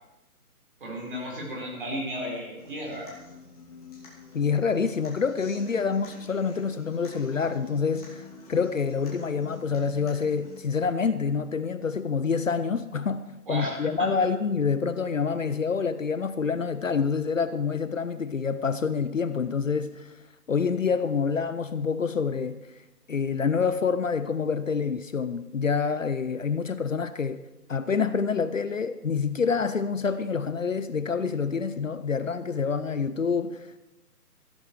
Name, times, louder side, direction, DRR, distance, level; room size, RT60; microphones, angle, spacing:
voice 1, 0.8-3.1 13.5-13.8, equal, 35° right, -3 dB, 4.7 m, -34 dB
Human voice / Acoustic guitar, 2.6-10.6, left 3 dB, 25° left, 2.8 m, -46 dB
voice 2, 4.3-13.2 13.5-20.2 20.5-22.6 23.1-27.4 27.7-33.8, left 5 dB, 55° left, 12 dB, 0.7 m, -27 dB
14.5 x 13.0 x 4.7 m, 0.99 s
hypercardioid pair, 175°, 47 cm